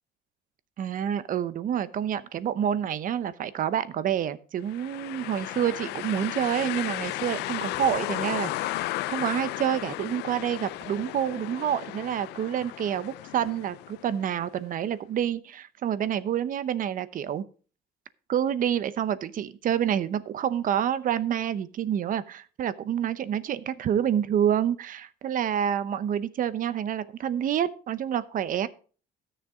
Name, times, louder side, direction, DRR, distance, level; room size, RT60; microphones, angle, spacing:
voice 1, 0.8-17.4 18.3-28.7, right 9 dB, 55° right, 15 dB, 0.8 m, -28 dB
sound 1, 4.7-14.5, left 18 dB, 85° left, 0.4 m, -34 dB
13.0 x 6.7 x 4.9 m, 0.40 s
cardioid pair, 110°, 17 cm